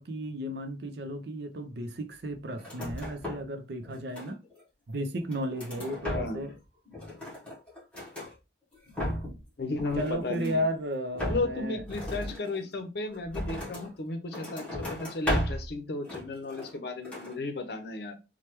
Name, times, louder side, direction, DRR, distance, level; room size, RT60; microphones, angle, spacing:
voice 1, 0.0-4.4 4.9-6.5 10.0-11.8, equal, 65° right, 0.5 m, -34 dB
sound 1, 2.6-3.6 3.8-4.6 5.1-6.6 6.9-8.3 8.7-9.4 9.7-10.7 11.1-13.9 14.3-15.7 16.0-16.8 17.0-17.4, equal, 5° left, 1.0 m, -35 dB
voice 2, 6.1-6.4 9.6-10.7 11.2-18.1, left 2 dB, 60° left, 0.6 m, -34 dB
3.2 x 2.2 x 2.9 m
head